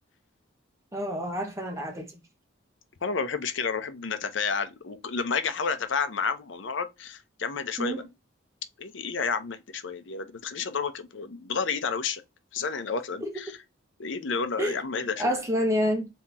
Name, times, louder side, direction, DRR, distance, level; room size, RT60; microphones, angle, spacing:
voice 1, 0.9-2.2 7.8-8.0 13.2-13.3 14.6-16.1, equal, 15° right, 0.9 m, -28 dB
voice 2, 3.0-8.1 8.8-12.2 12.5-13.6 14.0-15.3, left 5 dB, 75° left, 0.7 m, -31 dB
3.8 x 2.9 x 4.1 m
head